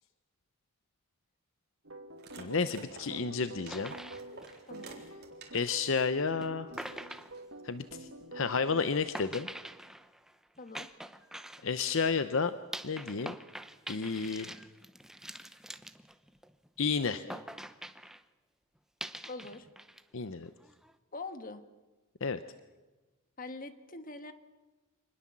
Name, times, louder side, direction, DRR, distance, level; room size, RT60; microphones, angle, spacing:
sound 1, 1.8-8.9, right 1 dB, 65° right, 2.1 m, -48 dB
sound 2, 2.2-5.8 6.2-6.3 6.7-7.5, right 4 dB, 50° right, 4.0 m, -51 dB
voice 1, 2.4-3.9 5.5-6.7 7.6-8.1 8.3-9.5 11.6-12.5 12.8-13.3 13.9-14.5 16.8-17.2 20.1-20.5 22.2-22.4, left 5 dB, 60° left, 12 dB, 0.8 m, -31 dB
sound 3, 3.7-5.5 6.4-6.5 6.8-8.1 9.1-12.0 12.7-16.7 17.3-18.2 19.0-20.0 20.3-20.9, right 1 dB, ahead, 0.8 m, -45 dB
voice 2, 4.7-5.0 10.6-10.9 17.0-17.4 19.2-19.7 21.1-21.6 23.4-24.3, left 3 dB, 40° left, 9 dB, 1.5 m, -44 dB
26.0 x 20.0 x 7.5 m, 1.2 s
head